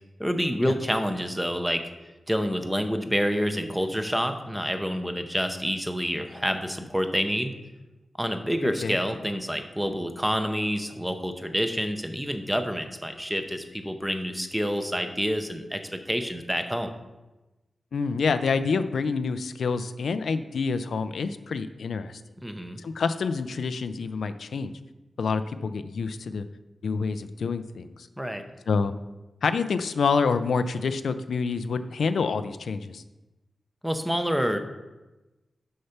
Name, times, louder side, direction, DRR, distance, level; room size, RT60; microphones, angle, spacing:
voice 1, 0.2-1.8 2.3-7.5 8.2-16.9 22.4-22.8 28.2-28.4 33.8-34.6, equal, 5° right, 7 dB, 0.7 m, -28 dB
voice 2, 17.9-22.2 22.8-24.7 25.2-26.5 26.8-27.9 28.7-28.9 29.4-33.0, left 5 dB, 85° left, 10 dB, 0.4 m, -27 dB
6.4 x 5.5 x 5.8 m, 1.1 s
wide cardioid pair, 125°, 0 cm